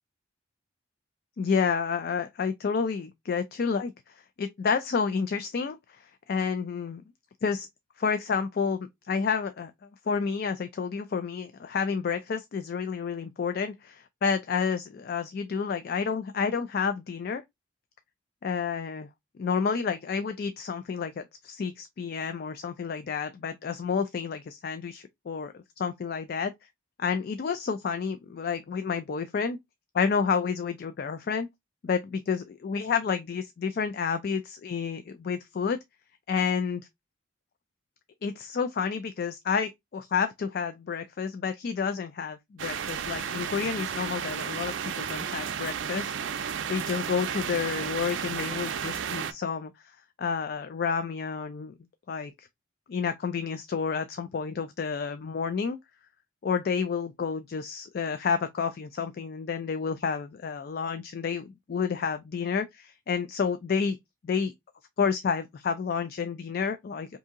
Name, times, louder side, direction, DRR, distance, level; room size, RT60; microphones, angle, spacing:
voice 1, 1.4-7.0 7.4-7.7 8.0-9.7 10.1-17.4 18.4-19.1 19.4-26.5 27.0-29.6 29.9-31.5 31.8-35.8 36.3-36.9 38.2-46.1 46.7-49.7 50.2-51.7 52.1-52.5 52.9-55.8 56.4-64.0 64.2-64.5 65.0-67.2, left 6 dB, 50° left, 0.3 m, -30 dB
sound 1, 42.6-49.3, right 7 dB, 70° right, 0.4 m, -33 dB
2.7 x 2.7 x 3.5 m
head